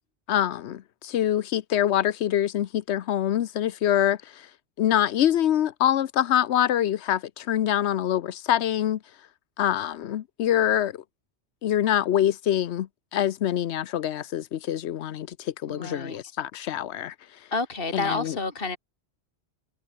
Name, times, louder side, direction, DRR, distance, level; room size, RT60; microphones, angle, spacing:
voice 1, 0.3-4.5 4.8-9.0 9.6-11.0 11.6-17.1 17.9-18.4, left 11 dB, 80° left, 1.0 m, -25 dB
voice 2, 15.7-16.2 17.5-18.8, left 3 dB, 55° left, 2.6 m, -29 dB
omnidirectional pair, 1.1 m